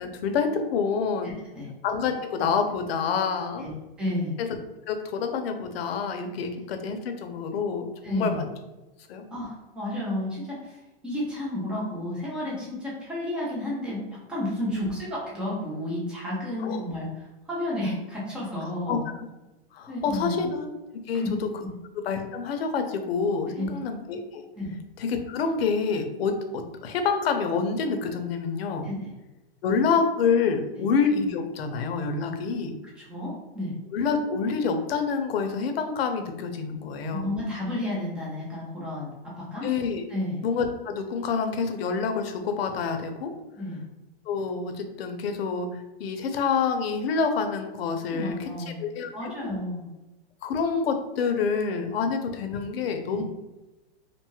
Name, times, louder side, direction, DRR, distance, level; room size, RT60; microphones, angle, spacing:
voice 1, 0.0-1.3 1.8-3.7 4.9-8.5 9.1-9.2 14.7-14.9 16.6-16.8 18.9-19.0 19.7-20.7 21.1-21.2 22.0-24.5 25.0-28.9 29.6-32.7 33.9-37.3 39.6-40.0 40.4-43.3 44.3-48.5 48.8-49.3 50.4-53.2, left 5 dB, 75° left, 6 dB, 0.6 m, -27 dB
voice 2, 1.2-1.7 3.6-3.7 4.0-4.3 8.0-8.4 9.3-14.0 14.3-19.0 19.9-20.4 21.1-21.3 23.6-23.7 24.6-24.7 28.8-29.1 33.0-33.7 37.1-39.7 40.1-40.4 43.6-43.8 48.1-48.8 49.1-49.9 53.1-53.2, left 1 dB, 5° right, -6 dB, 0.3 m, -32 dB
2.6 x 2.2 x 3.0 m, 1.0 s
supercardioid pair, 155°, 31 cm